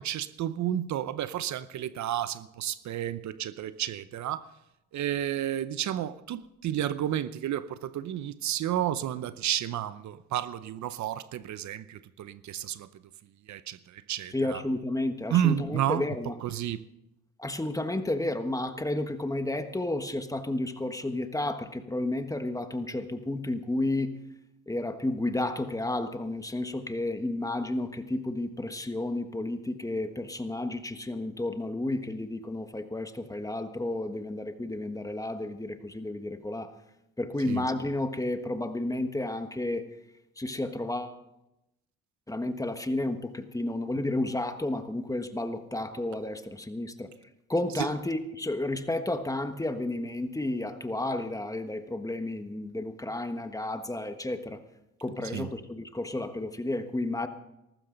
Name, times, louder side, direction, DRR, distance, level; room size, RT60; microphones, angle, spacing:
voice 1, 0.0-4.4 4.9-12.9 13.5-14.6 15.3-16.8 37.4-37.6 47.8-47.9 55.2-55.5, right 11 dB, 70° right, 0.7 m, -31 dB
voice 2, 14.3-16.4 17.4-24.1 24.7-36.7 37.2-39.8 40.4-41.2 42.3-47.1 47.5-54.6 55.0-57.3, left 2 dB, 10° left, 1.4 m, -32 dB
19.0 x 14.5 x 3.9 m
cardioid pair, 90°, 30 cm